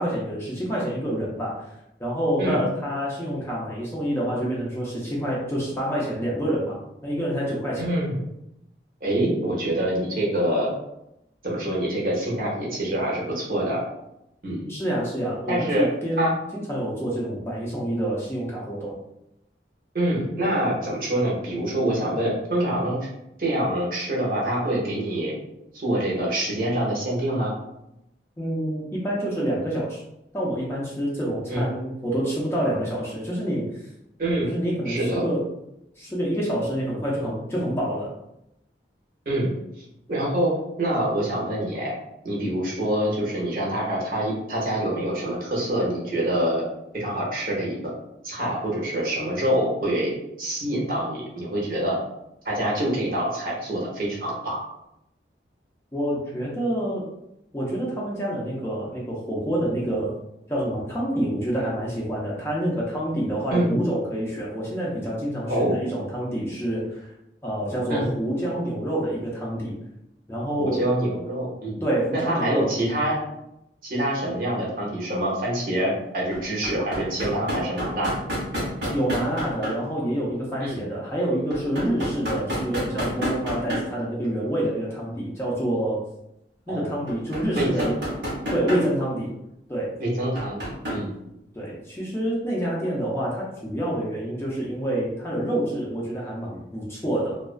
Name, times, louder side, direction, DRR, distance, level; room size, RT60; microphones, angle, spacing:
voice 1, 0.0-1.6 2.0-6.8 7.0-7.9 14.7-19.0 28.4-30.0 30.3-33.9 34.4-35.5 36.0-38.1 55.9-57.0 57.5-60.1 60.5-67.1 67.4-69.8 70.3-70.8 71.8-72.7 78.9-86.0 86.7-88.0 88.5-89.3 89.7-89.9 91.5-97.4, right 1 dB, 15° left, -5 dB, 0.4 m, -27 dB
voice 2, 7.8-8.2 9.0-10.7 11.4-13.8 14.4-14.7 15.5-15.9 16.2-16.3 19.9-23.0 23.4-25.3 25.7-27.5 31.5-31.6 34.2-34.5 34.8-35.2 39.3-39.5 40.1-41.9 42.2-46.6 46.9-47.9 48.2-50.1 50.4-52.0 52.4-54.6 63.5-63.7 65.5-65.8 67.9-68.1 70.6-71.8 72.1-73.2 73.8-78.1 80.6-80.9 82.1-82.2 86.7-86.9 87.5-87.9 90.0-91.1, right 1 dB, 50° right, -4 dB, 0.7 m, -25 dB
sound 1, 74.3-74.4 76.3-79.7 81.5-84.0 84.2-84.3 87.1-88.9 90.4-91.0 91.6-91.7, equal, 80° right, 0.8 m, -29 dB
2.3 x 2.2 x 2.4 m, 0.84 s
head